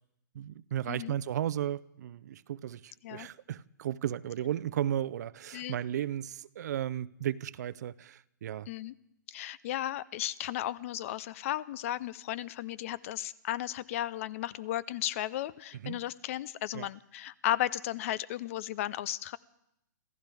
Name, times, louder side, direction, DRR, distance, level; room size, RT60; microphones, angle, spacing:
voice 1, 0.3-8.7 15.7-16.0 16.7-16.9, right 11 dB, 60° right, 0.6 m, -35 dB
voice 2, 9.3-19.4, left 13 dB, 45° left, 0.5 m, -35 dB
27.0 x 15.0 x 3.5 m
hypercardioid pair, 145°, 10 cm